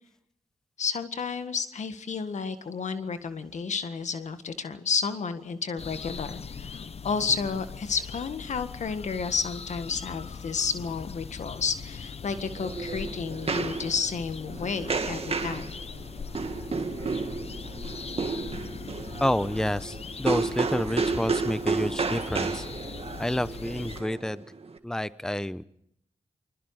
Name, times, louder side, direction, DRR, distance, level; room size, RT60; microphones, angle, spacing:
voice 1, 0.8-15.7, left 5 dB, 75° left, 9 dB, 1.7 m, -31 dB
sound 1, 5.8-24.0, left 6 dB, 55° left, 0.8 m, -41 dB
sound 2, 12.3-24.8, right 4 dB, 55° right, 2.0 m, -32 dB
voice 2, 19.2-22.7 23.2-24.4 24.8-25.6, left 1 dB, 5° left, 16 dB, 0.8 m, -29 dB
29.0 x 21.0 x 4.9 m, 0.74 s
cardioid pair, 45°, 12 cm